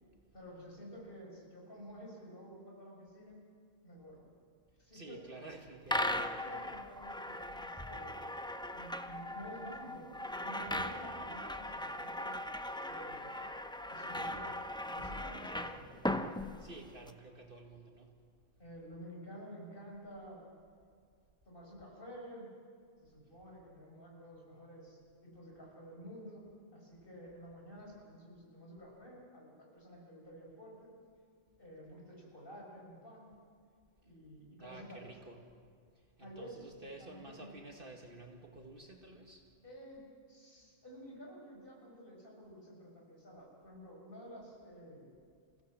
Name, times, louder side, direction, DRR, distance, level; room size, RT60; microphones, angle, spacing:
voice 1, 0.3-3.4 3.8-4.3 4.8-5.2 6.1-8.3 8.7-10.1 10.4-12.3 12.9-13.4 13.9-16.0 18.6-20.5 21.5-22.5 23.0-26.4 26.7-30.9 31.6-33.4 34.0-35.1 36.2-36.7 37.0-37.5 39.6-45.2, equal, 45° left, -2 dB, 5.9 m, -51 dB
voice 2, 4.9-6.1 16.6-18.1 34.6-35.4 36.2-39.4, right 2 dB, 45° right, 2 dB, 2.2 m, -51 dB
sound 1, 5.9-17.1, left 1 dB, 5° left, 0.5 m, -39 dB
28.0 x 16.5 x 7.6 m, 2.1 s
omnidirectional pair, 1.2 m